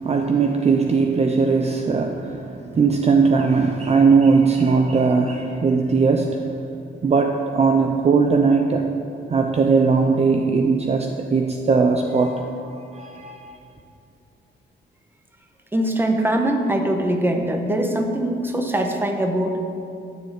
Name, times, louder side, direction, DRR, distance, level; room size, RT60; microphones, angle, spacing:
voice 1, 0.0-6.5 7.0-8.9 9.3-13.6, right 4 dB, 35° right, 4 dB, 0.7 m, -19 dB
voice 2, 15.7-19.6, right 1 dB, 10° right, 3 dB, 1.2 m, -22 dB
13.5 x 7.1 x 8.9 m, 2.5 s
wide cardioid pair, 170°, 19 cm